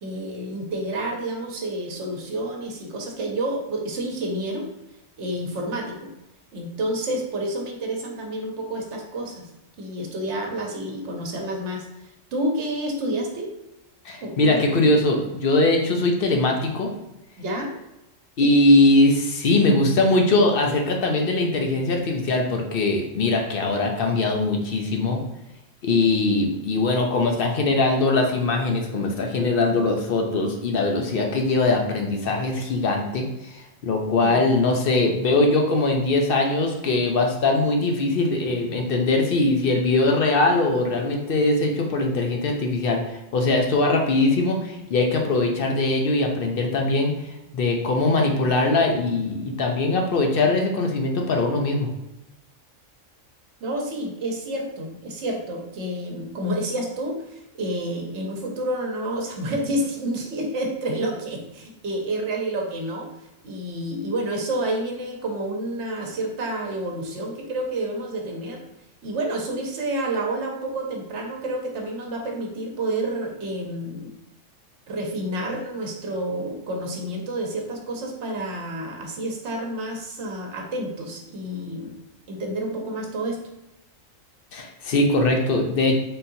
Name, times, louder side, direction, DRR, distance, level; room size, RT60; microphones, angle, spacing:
voice 1, 0.0-4.7 5.2-6.1 6.5-9.5 9.8-13.5 14.2-14.6 17.4-17.7 18.4-18.5 34.2-34.4 53.6-63.1 63.4-68.6 69.0-74.1 74.9-82.0 82.3-83.4, right 1 dB, 65° right, 1 dB, 1.1 m, -29 dB
voice 2, 14.0-16.9 18.4-25.2 25.8-51.9 84.5-86.0, left 2 dB, 55° left, 2 dB, 0.7 m, -21 dB
4.1 x 3.7 x 2.7 m, 0.92 s
omnidirectional pair, 1.3 m